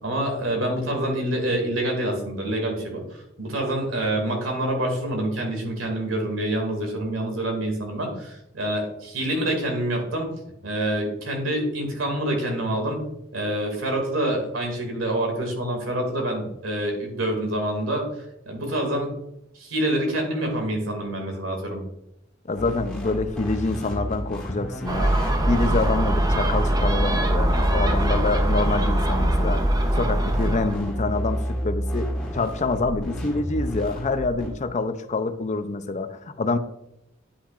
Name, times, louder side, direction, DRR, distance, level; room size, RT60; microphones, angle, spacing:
voice 1, 0.0-10.3 10.6-13.0 13.3-18.0 18.5-19.1 19.5-21.8, right 1 dB, 90° right, 2 dB, 2.3 m, -26 dB
voice 2, 22.5-25.1 25.5-29.6 30.0-36.6, left 3 dB, 35° left, 10 dB, 0.5 m, -26 dB
sound 1, 22.5-34.5, equal, 5° left, 2.0 m, -31 dB
Gull seagull, 24.9-30.8, right 1 dB, 20° right, 0.8 m, -22 dB
9.9 x 5.8 x 2.5 m, 0.83 s
head